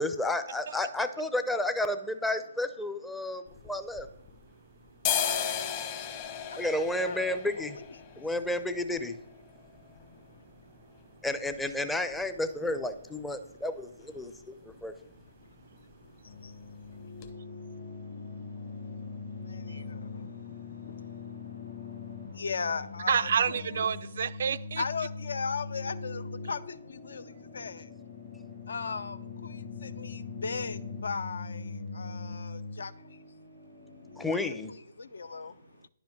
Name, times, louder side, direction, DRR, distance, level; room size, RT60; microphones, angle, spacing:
voice 1, 0.0-4.1 6.6-7.8 8.2-9.1 11.2-14.6 14.8-14.9 34.2-34.7, left 1 dB, 5° left, 0.6 m, -31 dB
sound 1, 3.5-4.5 4.9-12.6 12.9-13.0 13.3-13.8 14.1-14.3 14.6-14.9 15.1-15.8 16.2-16.3 16.8-16.9 17.2-17.3, left 8 dB, 30° left, 1.0 m, -36 dB
voice 2, 6.5-7.8 19.5-20.0 22.3-23.6 24.8-27.2 27.5-27.8 28.7-29.2 29.4-31.6 31.9-32.9 34.3-34.4 34.7-35.5, left 5 dB, 60° left, 0.6 m, -37 dB
voice 3, 10.2-11.2 14.3-14.5 14.7-14.9 15.1-15.2 15.8-16.3 18.9-19.1 19.3-21.4 21.7-21.8 22.1-22.4 23.1-24.8, right 7 dB, 50° right, 0.4 m, -34 dB
sound 2, 16.3-34.3, left 4 dB, 45° left, 1.6 m, -42 dB
10.5 x 5.1 x 6.0 m
figure-of-eight pair, 135°, 0 cm